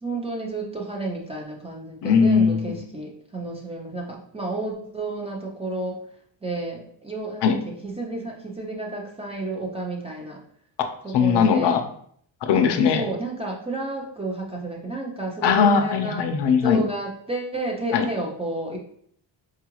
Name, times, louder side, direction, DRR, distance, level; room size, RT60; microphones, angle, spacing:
voice 1, 0.0-6.0 6.4-10.4 11.0-11.8 12.9-16.2 16.6-18.8, right 2 dB, 15° right, -1 dB, 0.4 m, -31 dB
voice 2, 2.0-2.8 7.4-7.6 11.1-11.8 12.4-13.0 15.4-16.8 17.9-18.1, left 6 dB, 65° left, 6 dB, 0.5 m, -19 dB
4.6 x 2.4 x 2.9 m, 0.64 s
cardioid pair, 145°, 46 cm